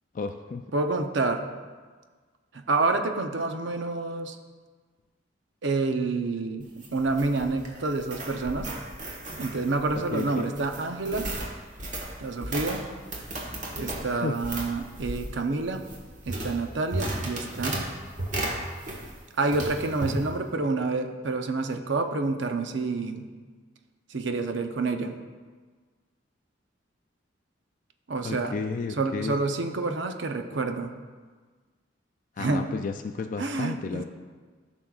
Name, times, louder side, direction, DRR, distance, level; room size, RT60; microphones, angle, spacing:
voice 1, 0.1-0.6 9.9-10.5 14.2-14.4 28.2-29.4 32.4-34.0, left 4 dB, 45° left, 6 dB, 0.3 m, -32 dB
voice 2, 0.7-1.4 2.5-4.4 5.6-8.7 9.4-11.3 12.2-12.8 13.8-15.8 16.3-17.9 19.4-23.3 24.1-25.2 28.1-28.5 29.0-30.9 32.4-32.7 33.4-34.0, right 3 dB, 70° right, 6 dB, 0.7 m, -28 dB
sound 1, 6.6-19.2 19.5-20.2, right 1 dB, 40° right, 1.4 m, -35 dB
14.0 x 6.2 x 2.4 m, 1.5 s
head